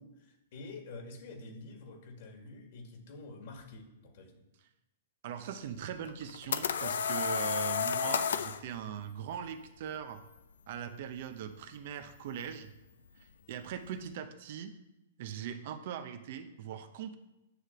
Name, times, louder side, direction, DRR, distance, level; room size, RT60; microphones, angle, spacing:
voice 1, 0.0-4.4, left 3 dB, 55° left, 3 dB, 2.1 m, -48 dB
voice 2, 5.2-10.2 10.7-12.7 13.2-14.7 15.2-17.1, right 8 dB, 55° right, 9 dB, 0.8 m, -40 dB
sound 1, 6.1-8.6, left 7 dB, 75° left, 0.5 m, -31 dB
9.6 x 3.3 x 6.8 m, 0.97 s
hypercardioid pair, 135°, 0 cm